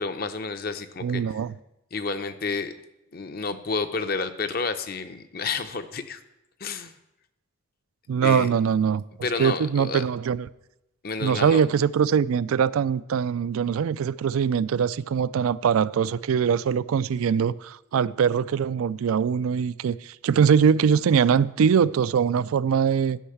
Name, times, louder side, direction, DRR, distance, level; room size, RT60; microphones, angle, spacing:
voice 1, 0.0-1.2 1.9-2.7 3.1-6.2 6.6-6.9 8.2-8.5 9.2-10.0 11.0-11.6, left 4 dB, 45° left, 0.6 m, -30 dB
voice 2, 1.0-1.5 8.1-9.0 9.4-10.5 11.2-23.2, right 7 dB, 90° right, 0.3 m, -22 dB
10.0 x 5.6 x 7.9 m
head